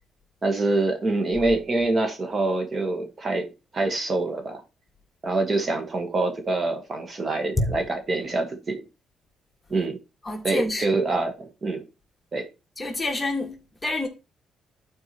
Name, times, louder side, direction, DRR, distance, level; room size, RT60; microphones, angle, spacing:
voice 1, 0.4-4.6 5.2-8.8 9.7-10.0 10.4-11.8 12.3-12.5, right 2 dB, 35° right, 1.6 m, -25 dB
voice 2, 10.2-10.9 12.8-14.1, left 2 dB, 20° left, 1.9 m, -27 dB
12.0 x 4.6 x 3.0 m
cardioid pair, 90°, 0 cm